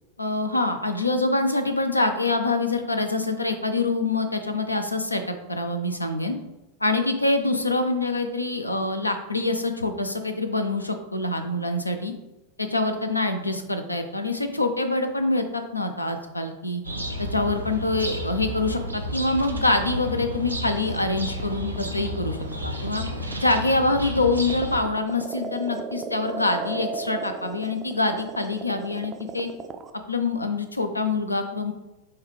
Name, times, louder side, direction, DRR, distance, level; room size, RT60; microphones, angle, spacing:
voice 1, 0.2-6.4 6.8-12.1 12.6-16.8 17.2-22.4 22.6-23.0 23.4-29.5 30.1-31.7, left 2 dB, 85° left, 7 dB, 0.4 m, -25 dB
sound 1, 16.8-24.8, equal, 85° right, 0.5 m, -32 dB
sound 2, 21.0-29.9, right 4 dB, 20° right, 0.3 m, -35 dB
5.5 x 2.2 x 3.2 m, 0.99 s
figure-of-eight pair, 90°, 0 cm